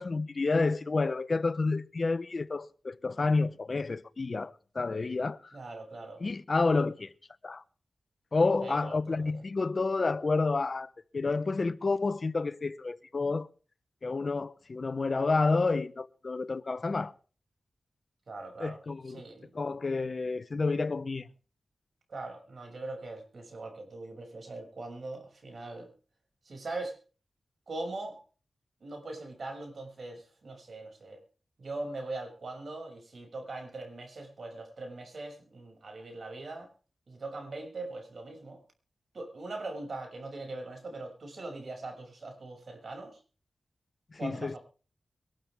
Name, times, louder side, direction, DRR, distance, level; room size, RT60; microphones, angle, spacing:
voice 1, 0.0-5.5 6.2-7.1 7.4-7.6 8.3-13.5 14.0-17.1 18.6-19.2 19.5-21.3 44.2-44.5, left 3 dB, 50° left, 0.9 m, -29 dB
voice 2, 5.5-6.2 8.6-9.4 18.3-18.8 19.0-19.5 22.1-25.9 26.4-27.0 27.7-28.2 28.8-31.2 31.6-36.7 37.1-38.6 39.1-43.2 44.2-44.6, right 2 dB, 65° right, 6.7 m, -41 dB
23.5 x 13.0 x 3.6 m
cardioid pair, 65°, 0 cm